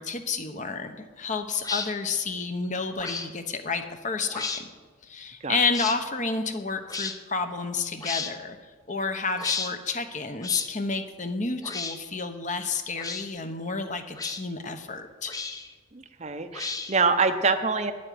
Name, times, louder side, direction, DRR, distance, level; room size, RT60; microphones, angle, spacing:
voice 1, 0.0-4.5 5.0-8.6 8.9-15.3, left 4 dB, 35° left, 8 dB, 1.0 m, -30 dB
sound 1, 1.6-1.9 3.0-3.3 4.3-4.6 5.7-6.0 6.9-7.2 8.0-8.3 9.4-9.7 10.4-10.7 11.6-12.0 13.0-13.3 14.2-14.4 15.3-15.7 16.5-17.1, left 4 dB, 15° left, 0.7 m, -33 dB
voice 2, 15.9-17.9, right 4 dB, 35° right, 9 dB, 0.7 m, -25 dB
10.0 x 8.7 x 9.3 m, 1.4 s
head